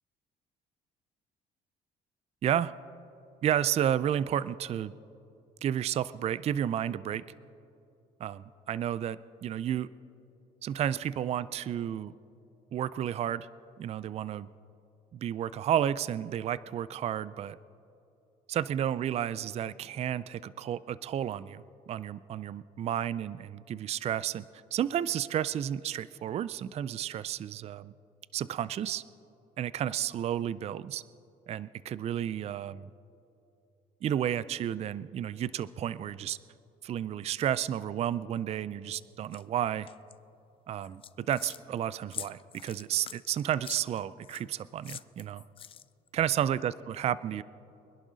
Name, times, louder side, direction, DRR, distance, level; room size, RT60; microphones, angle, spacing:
voice 1, 2.4-2.7 3.4-4.9 5.6-7.2 8.2-9.9 10.6-12.1 12.7-13.5 13.8-14.5 15.1-17.6 18.5-24.4 24.7-27.9 28.3-29.0 29.6-31.0 31.5-32.9 34.0-36.4 36.8-39.9 40.7-45.4 46.1-47.4, right 10 dB, 40° right, 18 dB, 0.3 m, -32 dB
sound 1, 39.3-39.4 39.9-40.1 40.8-41.6 42.1-44.4 44.8-46.1, left 8 dB, 35° left, 0.4 m, -44 dB
24.0 x 11.0 x 4.0 m, 2.6 s
cardioid pair, 110°, 17 cm